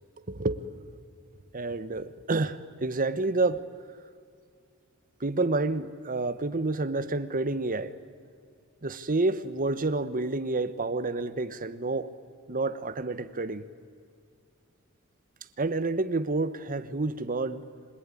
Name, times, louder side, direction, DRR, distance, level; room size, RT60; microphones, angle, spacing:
voice 1, 0.3-0.6 1.5-3.6 5.2-7.9 8.8-12.1 12.5-13.6 15.6-17.7, right 3 dB, 40° right, 1.1 m, -29 dB
27.0 x 22.0 x 9.9 m
head